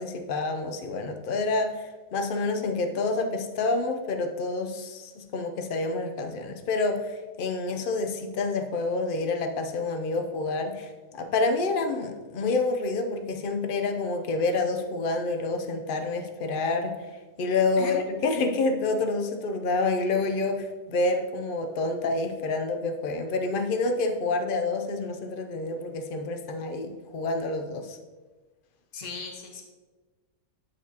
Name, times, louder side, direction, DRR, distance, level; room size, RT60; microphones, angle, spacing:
voice 1, 0.0-17.0 17.4-28.0, left 3 dB, 70° left, 6 dB, 0.5 m, -28 dB
voice 2, 28.9-29.6, left 3 dB, 30° left, 1 dB, 1.0 m, -37 dB
12.0 x 4.2 x 2.8 m, 1.3 s
omnidirectional pair, 1.6 m